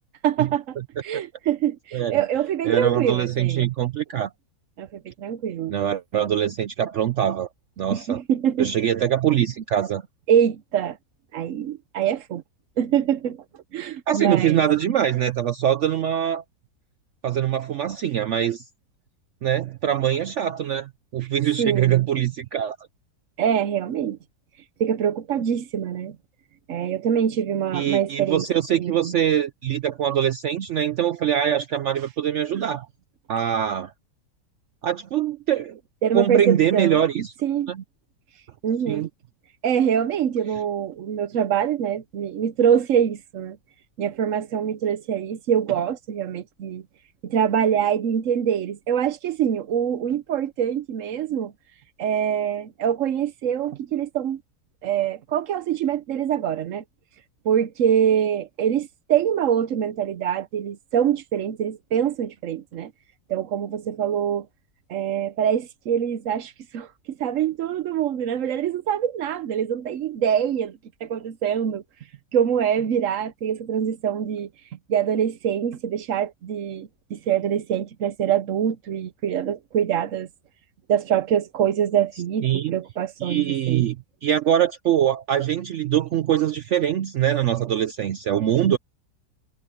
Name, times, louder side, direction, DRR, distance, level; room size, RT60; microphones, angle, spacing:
voice 1, 0.2-0.8 1.0-3.7 4.8-5.7 7.9-8.7 10.3-11.0 11.3-12.4 12.8-13.4 13.7-14.6 21.6-22.0 23.4-24.2 24.8-26.2 26.7-28.4 28.8-29.1 36.0-37.0 37.4-37.7 38.6-39.1 39.6-43.6 44.0-46.8 47.2-51.5 52.0-54.4 54.8-56.8 57.4-62.9 63.3-64.5 64.9-71.8 72.3-74.5 74.9-80.3 80.9-83.9, right 9 dB, 60° right, 0.9 m, -24 dB
voice 2, 1.9-2.2 2.6-4.3 5.7-7.5 7.8-8.2 8.6-10.0 14.1-16.4 17.2-18.6 19.4-22.8 27.7-32.9 33.3-33.9 34.8-35.8 36.1-37.3 37.7-37.8 38.9-39.1 82.4-82.8 83.2-84.0 84.2-88.8, right 10 dB, 80° right, 0.6 m, -23 dB
omnidirectional pair, 1.9 m